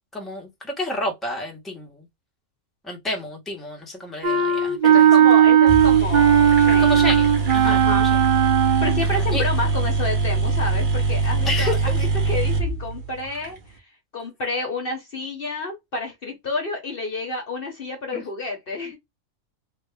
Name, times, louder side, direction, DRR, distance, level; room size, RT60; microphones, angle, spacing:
voice 1, 0.1-2.1 2.8-5.1 6.8-8.2 9.0-9.5 11.4-11.8 18.1-18.2, left 2 dB, ahead, 1.0 m, -30 dB
Wind instrument woodwind instrument, 4.2-9.1, right 9 dB, 60° right, 0.5 m, -16 dB
voice 2, 4.5-7.1 7.6-8.1 8.8-13.8 14.1-19.0, left 2 dB, 50° left, 1.0 m, -30 dB
sound 1, 5.4-5.5 5.7-13.5, right 3 dB, 45° right, 1.0 m, -23 dB
3.3 x 2.6 x 3.3 m
omnidirectional pair, 1.4 m